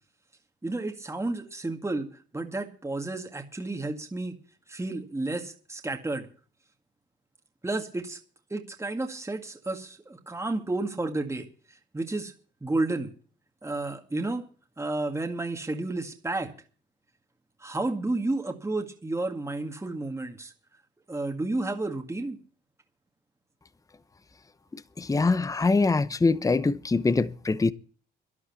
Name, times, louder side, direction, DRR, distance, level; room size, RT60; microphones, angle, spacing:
voice 1, 0.6-4.3 4.7-6.3 7.6-8.2 8.5-11.5 11.9-12.3 12.6-13.1 13.6-14.5 14.8-16.5 17.6-20.5 21.1-22.4, right 2 dB, 15° right, 2.0 m, -31 dB
voice 2, 25.0-27.7, left 3 dB, 15° left, 0.8 m, -23 dB
12.0 x 11.0 x 7.1 m
cardioid pair, 90°, 20 cm